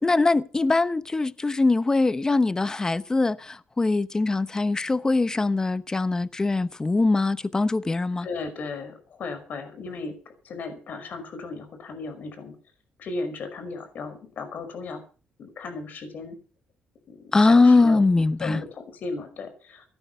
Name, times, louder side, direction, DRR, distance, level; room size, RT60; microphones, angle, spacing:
voice 1, 0.0-8.3 17.3-18.6, left 3 dB, 20° left, 0.9 m, -22 dB
voice 2, 8.2-10.1 10.4-12.5 13.0-15.0 15.4-16.4 17.1-18.0 18.4-19.9, left 3 dB, 60° left, 5.4 m, -35 dB
17.5 x 12.0 x 5.5 m
cardioid pair, 105°, 3 cm